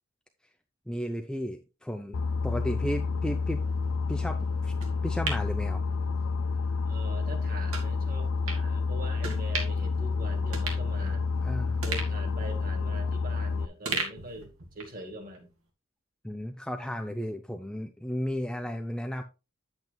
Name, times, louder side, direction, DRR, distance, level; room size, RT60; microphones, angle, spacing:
voice 1, 0.9-3.6 4.1-4.7 5.0-5.8 11.4-11.8 16.2-19.2, equal, 5° left, 0.5 m, -34 dB
Boat Water vehicle, 2.1-13.7, left 4 dB, 85° left, 0.5 m, -29 dB
sound 1, 4.8-6.4 6.8-6.9 7.7-7.9 8.5-8.6 9.2-9.9 10.2-10.3 10.5-11.4 11.8-13.4 13.8-15.0 15.3-15.4, right 4 dB, 75° right, 2.1 m, -37 dB
voice 2, 6.9-11.3 11.8-15.5, right 1 dB, 40° right, 1.9 m, -43 dB
9.0 x 8.0 x 2.3 m
head